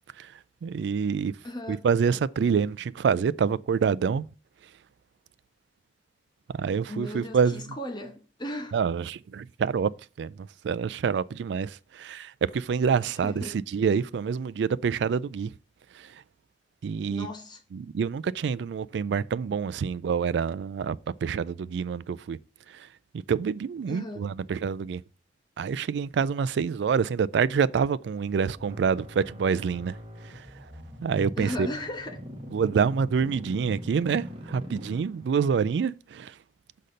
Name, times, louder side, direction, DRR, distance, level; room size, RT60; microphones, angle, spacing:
voice 1, 0.2-1.3 1.7-4.3 6.5-7.6 8.7-9.9 10.2-15.5 15.9-16.2 16.8-17.3 17.7-22.4 22.7-22.9 23.1-25.0 25.6-30.6 31.0-31.7 32.5-36.4, right 6 dB, 70° right, 0.3 m, -27 dB
voice 2, 1.4-1.8 6.9-8.8 13.2-13.6 17.1-17.6 23.9-24.3 31.4-32.2, left 1 dB, 25° left, 1.1 m, -36 dB
sound 1, 28.5-35.5, equal, 30° right, 1.4 m, -42 dB
6.5 x 4.2 x 5.0 m
head